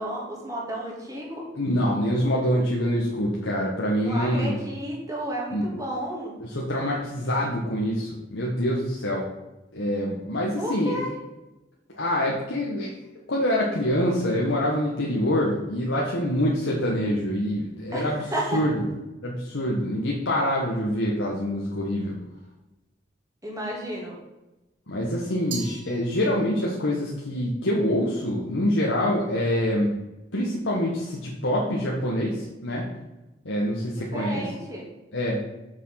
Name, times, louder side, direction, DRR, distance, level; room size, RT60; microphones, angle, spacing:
voice 1, 0.0-1.4 4.0-6.3 10.6-11.1 17.9-18.6 23.4-24.2 33.9-34.9, right 1 dB, 15° right, -3 dB, 2.7 m, -32 dB
voice 2, 1.5-4.6 5.5-5.7 6.4-9.2 9.7-11.0 11.9-12.9 13.3-18.3 18.5-18.7 19.2-22.2 24.9-29.9 30.3-32.9 33.4-34.4 35.1-35.4, equal, 90° left, -4 dB, 1.6 m, -25 dB
Glass, 25.5-26.7, right 5 dB, 85° right, 1.5 m, -39 dB
7.4 x 6.5 x 5.9 m, 1.0 s
head